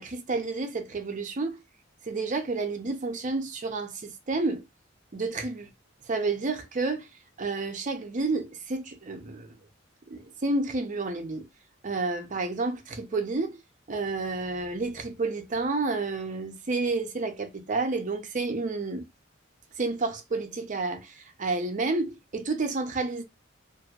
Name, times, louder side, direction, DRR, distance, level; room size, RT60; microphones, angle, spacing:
voice 1, 0.0-1.6 2.1-4.6 5.1-5.7 6.1-7.1 7.4-9.5 10.1-11.4 11.8-13.6 13.9-19.1 19.8-23.2, right 3 dB, 40° right, 0.6 m, -30 dB
2.9 x 2.6 x 2.3 m
head